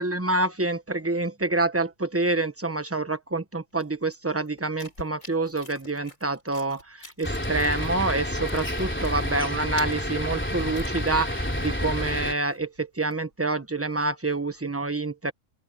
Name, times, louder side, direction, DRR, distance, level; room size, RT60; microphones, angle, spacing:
voice 1, 0.0-15.3, right 2 dB, 10° right, 1.1 m, -27 dB
sound 1, 3.8-8.1 8.4-11.5 11.7-11.8 12.2-13.4 13.8-14.6, left 2 dB, 65° left, 6.5 m, -47 dB
sound 2, 7.2-12.3, equal, 10° left, 3.4 m, -29 dB
open air
omnidirectional pair, 1.4 m